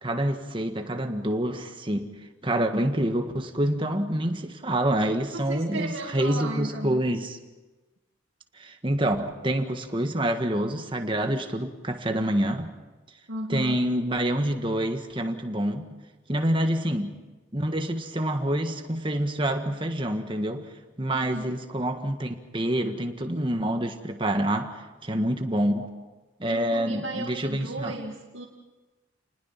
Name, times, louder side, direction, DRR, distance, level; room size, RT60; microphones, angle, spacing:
voice 1, 0.0-2.1 2.4-7.4 8.5-12.7 13.5-15.8 16.3-17.1 17.5-20.7 21.0-25.9 26.4-27.9, right 1 dB, 25° right, 5 dB, 1.7 m, -27 dB
voice 2, 5.1-7.0 13.3-13.8 16.6-16.7 21.1-21.5 25.8-25.9 26.5-28.5, right 2 dB, 75° right, -1 dB, 2.3 m, -35 dB
29.0 x 20.0 x 5.9 m, 1.2 s
head